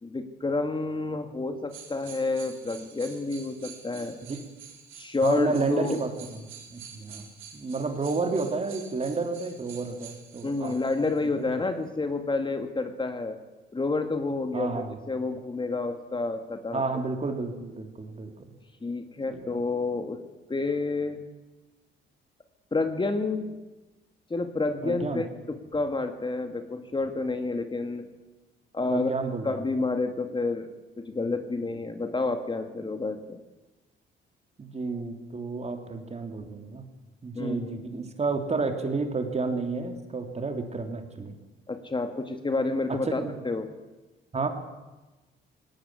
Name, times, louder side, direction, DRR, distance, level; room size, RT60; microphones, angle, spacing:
voice 1, 0.0-4.2 5.0-6.0 10.4-13.4 13.7-16.8 18.8-20.2 20.5-21.2 22.7-23.6 24.3-28.1 28.7-29.1 29.4-30.7 31.0-33.4 37.4-37.8 41.7-43.7, left 3 dB, 25° left, 7 dB, 2.1 m, -29 dB
sound 1, 1.7-11.3 11.8-11.9, right 7 dB, 80° right, 4.0 m, -48 dB
voice 2, 5.2-6.4 6.7-10.8 11.3-11.5 14.5-15.0 16.7-18.5 19.3-19.4 24.8-25.2 28.9-29.6 34.6-36.8 37.2-41.3 42.9-43.3 44.3-44.5, right 4 dB, 35° right, 6 dB, 3.3 m, -31 dB
19.0 x 17.5 x 9.8 m, 1.1 s
cardioid pair, 90°, 20 cm